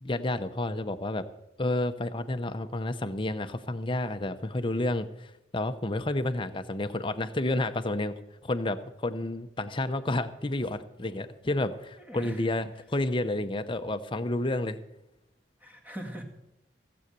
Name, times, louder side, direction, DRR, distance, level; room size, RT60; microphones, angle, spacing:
voice 1, 0.0-1.2 1.6-8.1 8.4-14.8, left 2 dB, 25° left, 9 dB, 0.7 m, -30 dB
voice 2, 12.0-12.4 15.6-16.2, equal, 10° right, 3 dB, 1.8 m, -40 dB
15.5 x 7.9 x 6.8 m, 0.89 s
head